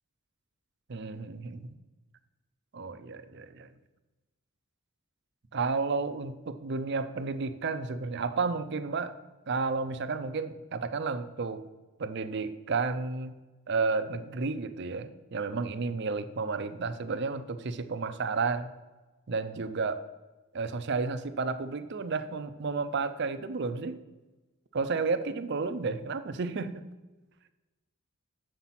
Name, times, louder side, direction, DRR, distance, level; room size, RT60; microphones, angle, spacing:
voice 1, 0.9-1.7 2.7-3.7 5.5-9.1 9.5-11.6 12.0-13.3 13.7-18.7 19.3-20.0 20.5-24.0 24.7-26.9, right 4 dB, 50° right, 11 dB, 0.5 m, -32 dB
7.1 x 5.7 x 5.8 m, 1.2 s
head